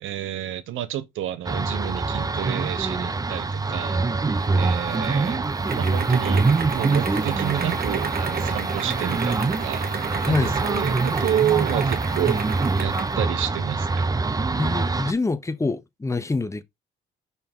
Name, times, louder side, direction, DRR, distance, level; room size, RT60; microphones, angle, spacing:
voice 1, 0.0-5.4 5.7-14.1, right 12 dB, 85° right, 0.9 m, -30 dB
sound 1, 1.4-15.1, right 3 dB, 20° right, 0.6 m, -24 dB
sound 2, 4.4-13.2, right 6 dB, 50° right, 1.4 m, -33 dB
voice 2, 14.6-16.6, left 3 dB, 15° left, 0.8 m, -25 dB
5.8 x 5.7 x 3.6 m
cardioid pair, 90°, 20 cm